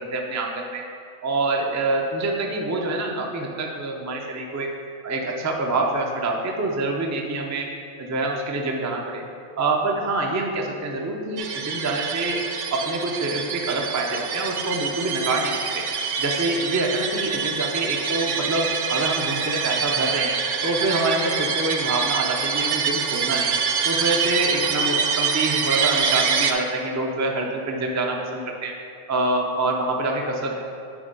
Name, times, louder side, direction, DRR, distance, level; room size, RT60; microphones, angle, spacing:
voice 1, 0.1-0.8 1.2-4.7 5.0-7.7 8.0-9.2 9.6-12.4 12.7-15.8 16.2-23.6 23.8-28.7 29.1-30.6, right 2 dB, 25° right, 1 dB, 0.4 m, -26 dB
sound 1, 11.4-26.5, right 6 dB, 75° right, 0.9 m, -25 dB
9.8 x 3.3 x 5.3 m, 2.4 s
omnidirectional pair, 1.3 m